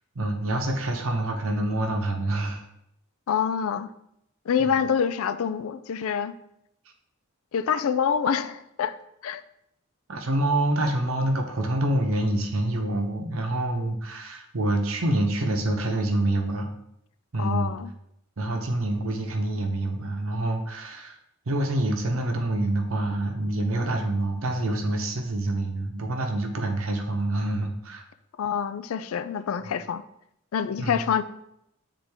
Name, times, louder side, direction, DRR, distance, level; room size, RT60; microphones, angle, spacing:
voice 1, 0.2-2.6 4.7-4.8 10.1-16.7 17.3-17.8 18.4-21.2 21.5-28.0 30.8-31.0, right 1 dB, 65° right, 4 dB, 0.9 m, -26 dB
voice 2, 3.3-3.9 4.5-6.3 7.5-9.0 9.2-9.4 17.4-17.9 28.4-30.0 30.5-31.2, left 7 dB, 70° left, 13 dB, 0.4 m, -26 dB
8.0 x 3.7 x 3.5 m, 0.78 s
head